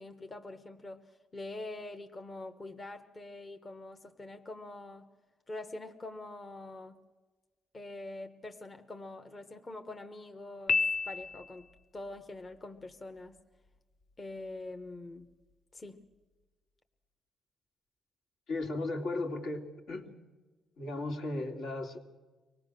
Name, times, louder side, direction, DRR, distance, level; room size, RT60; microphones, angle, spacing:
voice 1, 0.0-5.1 5.5-7.0 7.7-11.7 11.9-13.4 14.2-15.3 15.7-16.1, left 2 dB, 30° left, 6 dB, 1.1 m, -44 dB
Piano, 10.7-11.8, left 4 dB, 55° left, 0.6 m, -30 dB
voice 2, 18.5-20.1 20.8-22.0, left 2 dB, 75° left, 3 dB, 2.6 m, -36 dB
24.5 x 18.5 x 6.7 m, 1.3 s
cardioid pair, 90°, 0 cm